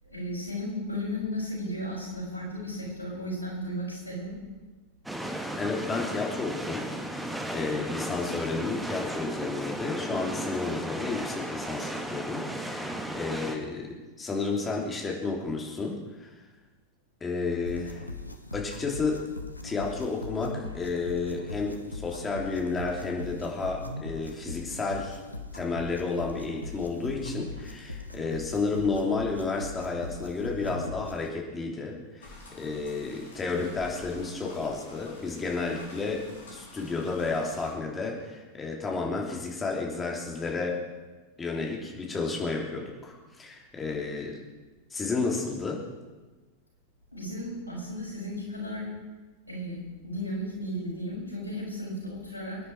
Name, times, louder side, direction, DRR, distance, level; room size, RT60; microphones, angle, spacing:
voice 1, 0.0-4.3 47.1-48.9 49.5-52.6, equal, 90° right, -5 dB, 6.8 m, -34 dB
sound 1, 5.1-13.6, right 1 dB, 5° right, 1.7 m, -35 dB
voice 2, 5.5-16.3 17.2-18.1 18.5-19.2 19.6-25.2 25.5-40.8 41.4-44.4 44.9-45.8, left 4 dB, 15° left, -1 dB, 3.3 m, -32 dB
sound 2, 17.7-31.3, left 2 dB, 85° left, 1.1 m, -40 dB
sound 3, 32.2-37.7, left 3 dB, 65° left, 3.8 m, -48 dB
24.5 x 10.0 x 4.7 m, 1.3 s
figure-of-eight pair, 90°, 0 cm